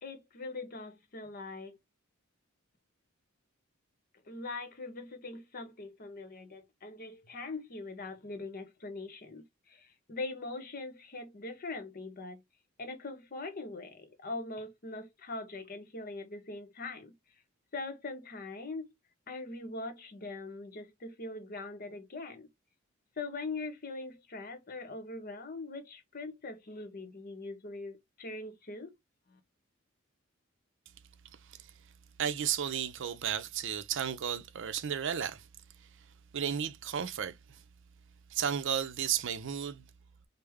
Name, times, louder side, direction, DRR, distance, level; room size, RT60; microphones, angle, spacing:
voice 1, 0.0-1.8 4.3-12.4 12.8-17.1 17.7-18.9 19.3-22.5 23.2-28.9 29.3-29.4, left 3 dB, 45° left, 0.8 m, -42 dB
voice 2, 32.2-35.4 36.3-37.3 38.3-39.8, right 8 dB, 60° right, 0.5 m, -33 dB
3.3 x 2.0 x 3.5 m
head